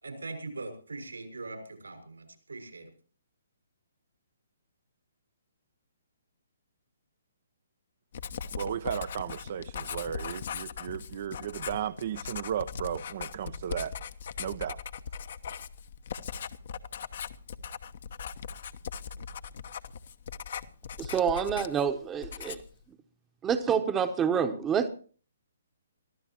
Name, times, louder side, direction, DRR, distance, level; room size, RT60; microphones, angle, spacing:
voice 1, 0.0-2.9, right 3 dB, 80° right, 6 dB, 6.2 m, -41 dB
Writing, 8.1-21.9 22.2-22.8, left 7 dB, 55° left, 1.1 m, -39 dB
voice 2, 8.5-13.9 14.4-14.8, right 9 dB, 50° right, 12 dB, 0.7 m, -35 dB
voice 3, 21.0-22.6 23.4-24.9, right 7 dB, 15° right, 8 dB, 1.0 m, -27 dB
24.0 x 14.5 x 3.0 m, 0.41 s
figure-of-eight pair, 135°, 0 cm